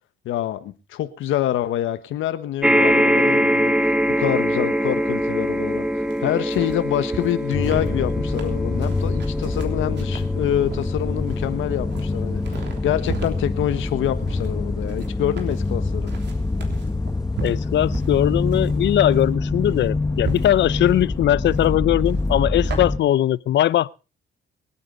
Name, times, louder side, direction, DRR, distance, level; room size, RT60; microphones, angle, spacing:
voice 1, 0.2-3.7 4.2-16.1, left 12 dB, 85° left, 1.4 m, -26 dB
sound 1, 2.6-17.2 17.9-18.0 18.3-18.4, equal, 5° right, 1.2 m, -25 dB
sound 2, 6.1-22.8, right 5 dB, 60° right, 3.3 m, -38 dB
sound 3, 7.5-23.0, left 3 dB, 20° left, 1.1 m, -25 dB
voice 2, 17.4-23.9, left 12 dB, 65° left, 0.6 m, -20 dB
24.5 x 8.9 x 3.9 m
cardioid pair, 90°, 20 cm